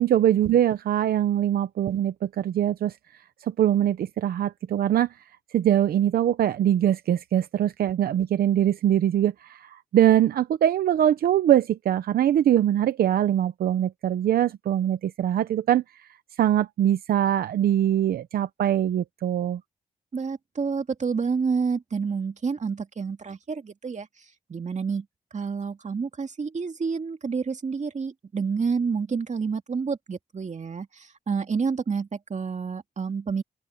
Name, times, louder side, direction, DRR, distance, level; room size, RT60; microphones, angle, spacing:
voice 1, 0.0-2.9 3.4-5.1 5.5-15.8 16.4-19.6, right 11 dB, 90° right, 0.7 m, -22 dB
voice 2, 20.1-24.1 24.5-25.1 25.3-33.4, right 5 dB, 50° right, 2.3 m, -29 dB
open air
cardioid pair, 55°, 15 cm